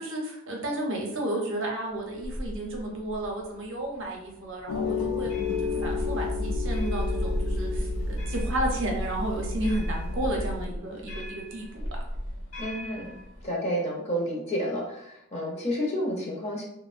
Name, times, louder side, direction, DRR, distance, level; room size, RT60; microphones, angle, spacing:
voice 1, 0.0-5.3 5.6-11.9, right 1 dB, 55° right, 0 dB, 0.6 m, -32 dB
sound 1, 1.9-13.5, equal, 65° left, 0.8 m, -37 dB
sound 2, 4.7-10.6, left 3 dB, 90° left, 0.3 m, -30 dB
voice 2, 12.6-13.1 13.4-16.6, equal, 30° left, -2 dB, 0.5 m, -30 dB
2.5 x 2.0 x 2.4 m, 0.79 s
head